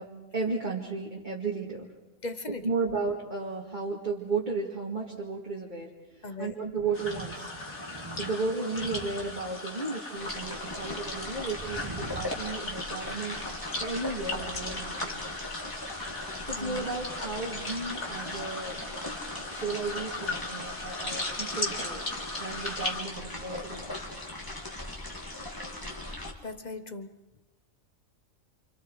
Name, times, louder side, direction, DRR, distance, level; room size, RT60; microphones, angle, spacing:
voice 1, 0.0-1.9 2.6-7.5 8.2-13.4 13.8-15.4 16.4-18.9 19.6-22.0 22.4-23.8, right 4 dB, 35° right, -3 dB, 2.4 m, -34 dB
voice 2, 2.2-2.6 6.2-6.5 16.6-16.8 26.4-27.1, left 2 dB, 35° left, 10 dB, 1.1 m, -38 dB
Thunder, 6.8-9.8 10.3-12.3, right 2 dB, 20° right, 2.1 m, -45 dB
sound 1, 6.9-23.0, left 2 dB, 55° left, 3.3 m, -37 dB
sound 2, 10.2-26.3, left 1 dB, 15° left, 2.4 m, -39 dB
28.0 x 28.0 x 4.8 m, 1.0 s
omnidirectional pair, 1.5 m